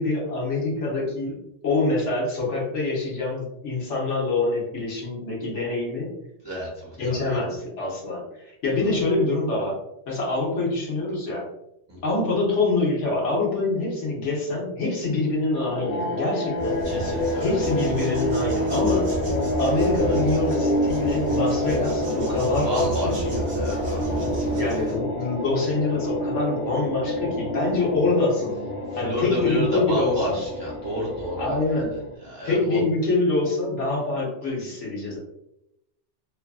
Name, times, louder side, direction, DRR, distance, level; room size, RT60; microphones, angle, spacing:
voice 1, 0.0-1.4 1.6-6.1 7.0-8.2 8.6-9.7 10.1-11.5 12.0-16.8 17.4-19.1 19.6-23.4 24.4-28.6 29.0-30.4 31.4-31.9 32.4-35.2, left 2 dB, 80° left, -3 dB, 1.2 m, -25 dB
voice 2, 6.4-7.4 8.8-9.0 11.9-12.0 16.8-17.5 22.6-24.0 24.3-24.5 29.0-31.6 32.2-32.8, equal, 25° right, -7 dB, 0.8 m, -31 dB
sound 1, 15.6-32.1, left 1 dB, 55° left, 0.9 m, -28 dB
sound 2, 16.6-25.0, right 2 dB, 55° right, 0.7 m, -31 dB
2.7 x 2.3 x 2.3 m, 0.83 s
omnidirectional pair, 1.2 m